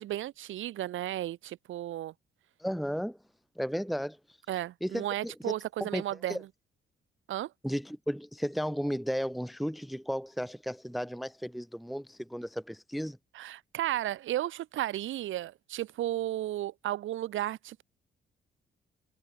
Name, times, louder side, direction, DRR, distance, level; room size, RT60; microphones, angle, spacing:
voice 1, 0.0-2.1 4.5-6.5 7.3-7.5 13.3-17.8, right 13 dB, 80° right, 2.6 m, -34 dB
voice 2, 2.6-3.2 3.6-4.2 4.8-5.5 5.8-6.0 6.3-6.4 7.6-13.2, equal, ahead, 0.9 m, -34 dB
cardioid pair, 90°, 20 cm